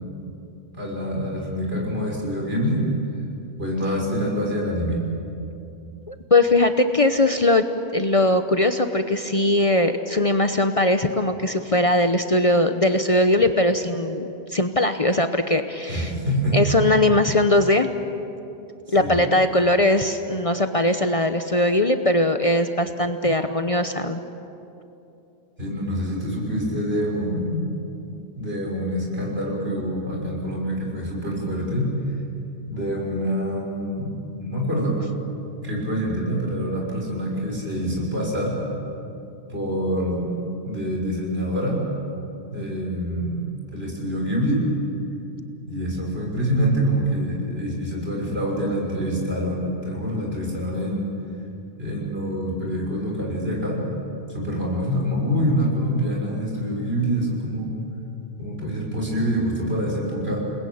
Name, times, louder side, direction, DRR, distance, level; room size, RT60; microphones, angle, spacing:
voice 1, 0.7-2.8 3.6-5.0 15.9-16.7 18.9-19.2 25.6-27.7 28.4-31.9 32.7-35.0 35.6-38.6 39.5-40.3 40.6-41.8 42.5-43.4 43.7-44.7 45.7-51.0 51.8-53.8 54.3-57.7 58.4-60.4, equal, 65° right, -2 dB, 6.4 m, -26 dB
voice 2, 6.1-7.6 7.9-16.1 16.5-17.9 18.9-24.2, left 1 dB, 35° left, 7 dB, 0.9 m, -20 dB
29.0 x 20.5 x 8.7 m, 2.8 s
omnidirectional pair, 1.1 m